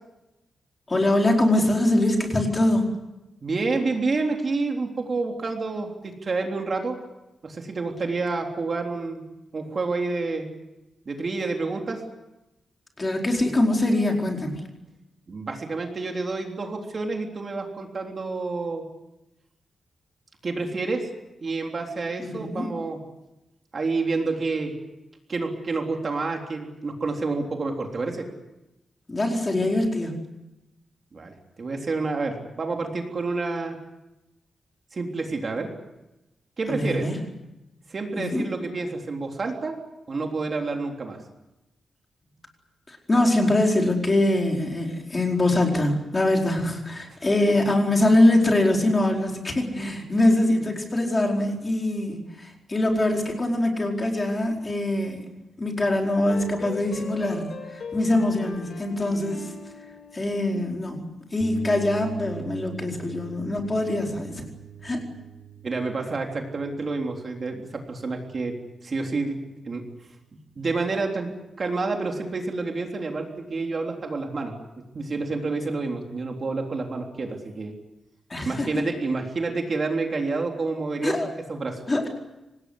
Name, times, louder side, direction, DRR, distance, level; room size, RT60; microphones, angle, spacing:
voice 1, 0.9-2.8 13.0-14.5 22.2-22.7 29.1-30.2 36.7-37.2 38.2-38.4 42.9-55.2 55.6-59.5 60.1-61.0 61.3-64.4 64.8-65.0 78.3-78.8 81.0-81.3 81.9-82.1, left 1 dB, 20° left, 1 dB, 4.6 m, -23 dB
voice 2, 3.4-7.0 7.4-9.2 9.5-10.5 11.1-12.0 15.3-18.8 20.4-21.1 21.4-23.0 23.7-24.7 25.3-28.3 31.1-33.8 34.9-35.7 36.6-37.1 37.9-39.8 40.1-41.2 47.2-47.3 65.6-68.5 68.8-69.4 69.6-69.8 70.6-71.3 71.6-74.6 74.9-77.7 78.4-81.8, right 3 dB, 40° right, 2 dB, 3.5 m, -29 dB
sound 1, 56.1-60.8, left 4 dB, 65° left, 4.1 m, -40 dB
sound 2, 61.4-69.1, right 7 dB, 10° right, 3.2 m, -42 dB
25.5 x 19.5 x 9.6 m, 0.98 s
wide cardioid pair, 160°, 0 cm